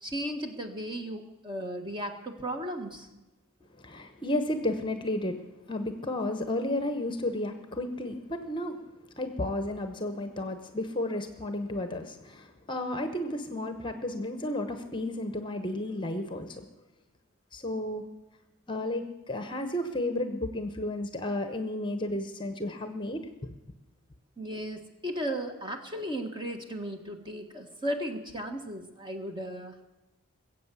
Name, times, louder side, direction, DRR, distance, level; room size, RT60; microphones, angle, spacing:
voice 1, 0.0-3.1 24.4-29.8, equal, 20° right, 4 dB, 1.5 m, -35 dB
voice 2, 3.8-5.4 5.7-8.8 9.1-16.7 17.5-18.0 18.7-23.5, left 1 dB, 20° left, 8 dB, 1.0 m, -32 dB
21.0 x 8.1 x 8.3 m, 1.1 s
head